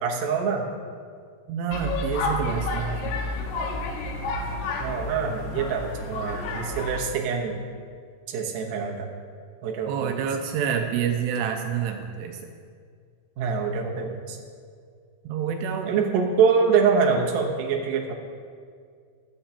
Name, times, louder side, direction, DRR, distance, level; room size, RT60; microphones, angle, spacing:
voice 1, 0.0-0.7 4.8-7.5 8.3-9.1 9.6-10.2 13.4-14.4 15.9-18.1, right 6 dB, 65° right, 0 dB, 2.1 m, -25 dB
voice 2, 1.5-3.2 9.9-12.5 15.3-16.0, right 7 dB, 85° right, 4 dB, 2.6 m, -28 dB
sound 1, 1.7-7.0, left 2 dB, 80° left, 3.1 m, -30 dB
16.0 x 12.0 x 2.9 m, 2.1 s
omnidirectional pair, 5.0 m